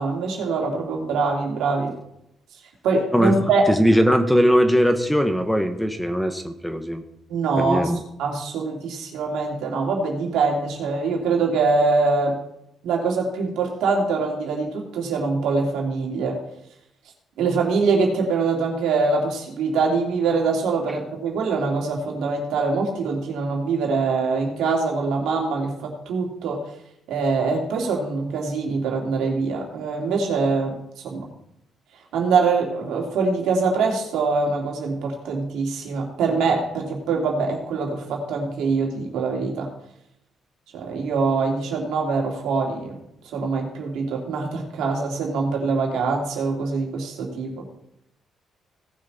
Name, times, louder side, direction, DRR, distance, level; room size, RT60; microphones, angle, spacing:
voice 1, 0.0-1.9 2.8-3.6 7.3-7.9 8.2-12.4 12.8-16.4 17.4-26.6 27.1-30.8 31.0-31.3 32.1-39.7 40.7-42.9 43.3-47.7, right 4 dB, 85° right, 0 dB, 2.9 m, -23 dB
voice 2, 3.7-7.0 7.6-8.0, equal, 5° left, 7 dB, 1.2 m, -20 dB
17.5 x 6.5 x 4.2 m, 0.80 s
cardioid pair, 90°, 0 cm